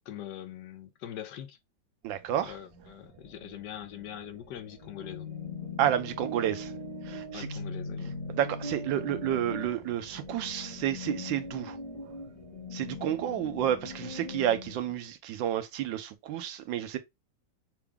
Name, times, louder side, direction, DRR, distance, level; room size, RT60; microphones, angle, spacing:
voice 1, 0.1-1.6 2.4-5.3 7.3-8.2, left 11 dB, 75° left, 1.1 m, -42 dB
sound 1, 2.0-14.9, right 4 dB, 40° right, 1.3 m, -55 dB
voice 2, 2.0-2.6 5.8-6.7 7.0-7.6 8.3-11.8 12.7-17.0, right 11 dB, 85° right, 1.4 m, -30 dB
sound 2, 4.8-14.7, left 2 dB, 35° left, 0.6 m, -40 dB
5.9 x 2.3 x 3.4 m
omnidirectional pair, 2.0 m